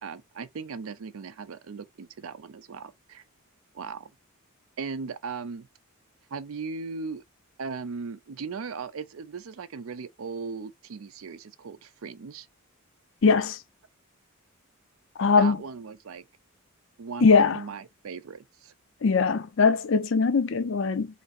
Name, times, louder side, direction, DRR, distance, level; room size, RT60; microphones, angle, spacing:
voice 1, 0.0-3.2 3.7-4.1 4.8-5.7 6.3-7.2 7.6-12.5 15.4-16.2 17.0-18.7, right 5 dB, 75° right, 0.5 m, -38 dB
voice 2, 13.2-13.6 15.2-15.6 17.2-17.6 19.0-21.1, left 4 dB, 60° left, 0.4 m, -21 dB
3.3 x 2.6 x 4.0 m
head